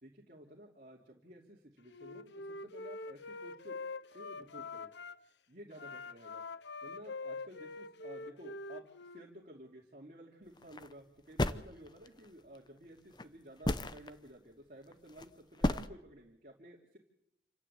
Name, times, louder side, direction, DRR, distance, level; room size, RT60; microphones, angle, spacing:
voice 1, 0.0-3.7 4.1-4.9 5.5-6.4 6.8-8.9 9.1-17.0, right 1 dB, 50° right, -1 dB, 2.9 m, -53 dB
Wind instrument woodwind instrument, 1.9-5.2 5.7-9.3, left 3 dB, 80° left, 0.8 m, -45 dB
sound 1, 10.6-10.9 11.4-12.3 13.2-13.3 13.6-14.1 14.9-15.2 15.6-15.9, left 1 dB, 25° left, 0.8 m, -32 dB
28.0 x 12.0 x 8.3 m, 0.81 s
head